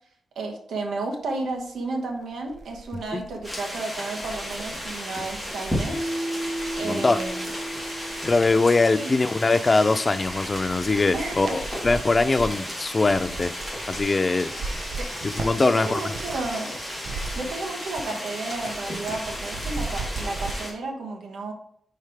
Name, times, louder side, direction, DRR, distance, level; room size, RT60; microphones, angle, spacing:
voice 1, 0.3-6.2 6.8-7.4 8.9-9.2 11.1-11.6 15.0-15.1 15.6-16.8 17.3-21.5, right 3 dB, 90° right, 3 dB, 1.2 m, -32 dB
sound 1, 1.9-2.0 2.4-8.6 9.2-9.8 10.1-16.5 16.8-18.2 18.4-20.6, right 3 dB, 60° right, 0.6 m, -38 dB
sound 2, 3.4-20.7, equal, 5° right, 2.1 m, -34 dB
Mallet percussion, 5.9-9.1, right 1 dB, 45° left, 1.3 m, -33 dB
voice 2, 6.8-7.2 8.2-13.5 13.9-14.5 15.2-16.0, left 3 dB, 25° left, 13 dB, 0.3 m, -22 dB
4.9 x 4.6 x 4.5 m, 0.68 s
wide cardioid pair, 140°, 0 cm